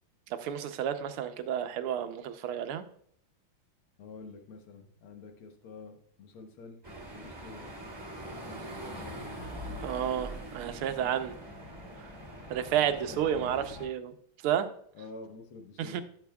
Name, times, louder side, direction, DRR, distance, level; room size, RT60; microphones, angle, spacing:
voice 1, 0.3-2.9 9.8-11.3 12.0-12.1 12.5-14.1 14.4-14.7 15.8-16.0, right 9 dB, 85° right, 9 dB, 1.6 m, -31 dB
voice 2, 4.0-6.8 7.1-7.7 8.2-9.4 12.9-13.6 14.9-16.0, left 4 dB, 80° left, 4 dB, 2.0 m, -48 dB
sound 1, 6.8-13.9, right 1 dB, 10° right, 1.9 m, -43 dB
11.5 x 7.2 x 2.3 m, 0.62 s
omnidirectional pair, 2.3 m